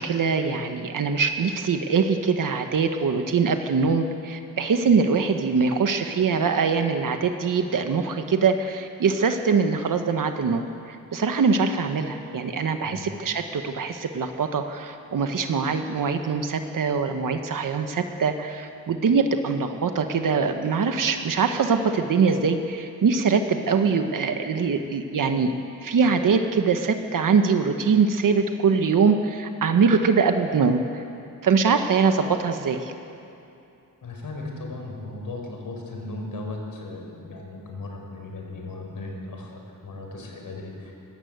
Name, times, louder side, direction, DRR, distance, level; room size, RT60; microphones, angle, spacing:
voice 1, 0.0-25.5 25.8-31.0 31.4-32.9, right 5 dB, 65° right, 6 dB, 1.2 m, -23 dB
voice 2, 34.0-40.9, left 2 dB, 70° left, 1 dB, 4.9 m, -36 dB
21.5 x 18.0 x 8.1 m, 2.7 s
wide cardioid pair, 135°, 35 cm